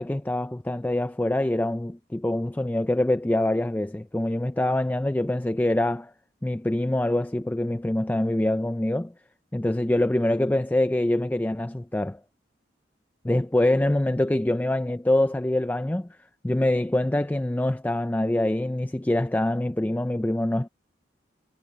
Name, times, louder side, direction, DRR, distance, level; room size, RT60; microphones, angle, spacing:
voice 1, 0.0-6.1 6.4-9.1 9.5-12.2 13.2-16.1 16.4-20.7, left 1 dB, 10° left, 0.4 m, -25 dB
head